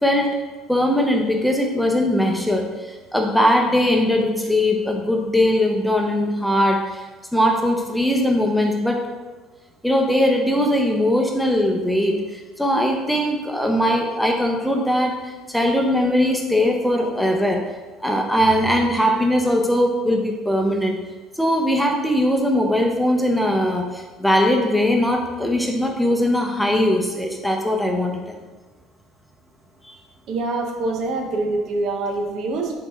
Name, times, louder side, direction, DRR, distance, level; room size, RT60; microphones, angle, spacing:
voice 1, 0.0-0.3 0.7-2.7 3.1-6.8 7.3-9.0 9.8-12.2 12.6-15.2 15.5-17.6 18.0-21.0 21.4-23.9 24.2-28.2, left 1 dB, ahead, 2 dB, 0.7 m, -20 dB
voice 2, 30.3-32.7, right 2 dB, 60° right, 3 dB, 0.7 m, -25 dB
5.2 x 2.8 x 3.5 m, 1.2 s
supercardioid pair, 80°, 0 cm